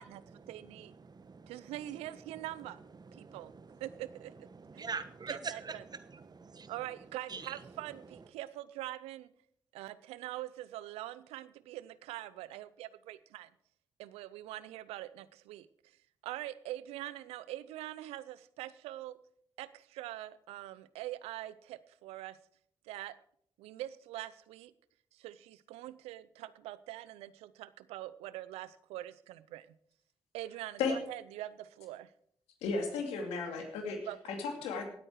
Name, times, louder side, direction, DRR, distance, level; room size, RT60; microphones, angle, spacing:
voice 1, 0.0-1.0 1.5-2.8 3.2-3.5 3.8-4.5 4.7-4.9 5.3-5.8 6.7-9.3 9.7-13.5 14.0-15.7 16.2-19.2 19.6-22.4 22.8-23.2 23.6-24.7 25.1-29.7 30.3-32.1 34.1-34.2, right 14 dB, 90° right, 17 dB, 0.5 m, -44 dB
voice 2, 1.0-1.6 3.1-3.8 4.5-6.7 7.3-7.5, right 5 dB, 40° right, 13 dB, 1.2 m, -43 dB
voice 3, 32.6-34.0 34.3-34.8, left 4 dB, 85° left, 4 dB, 2.4 m, -34 dB
17.5 x 8.9 x 4.7 m, 0.66 s
supercardioid pair, 50°, 10 cm